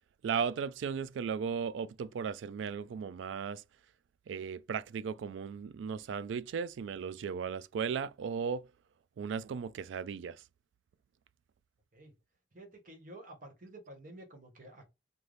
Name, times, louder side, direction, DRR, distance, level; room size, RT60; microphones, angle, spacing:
voice 1, 0.2-3.6 4.3-8.6 9.2-10.4, right 6 dB, 70° right, 0.3 m, -36 dB
voice 2, 12.5-14.8, right 1 dB, 45° right, 1.2 m, -51 dB
3.3 x 2.2 x 3.9 m
head